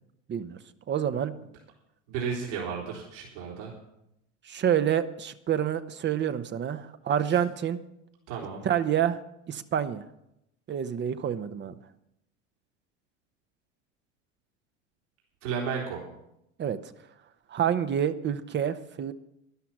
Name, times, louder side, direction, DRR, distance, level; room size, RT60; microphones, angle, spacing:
voice 1, 0.9-1.3 4.4-7.8 8.6-9.2 9.5-10.0 10.7-11.8 16.6-16.8 17.5-19.1, right 9 dB, 30° right, 11 dB, 1.0 m, -27 dB
voice 2, 2.1-3.7 8.3-8.6 15.4-16.0, right 6 dB, 70° right, -4 dB, 4.0 m, -33 dB
12.5 x 11.5 x 6.0 m, 0.83 s
hypercardioid pair, 90°, 36 cm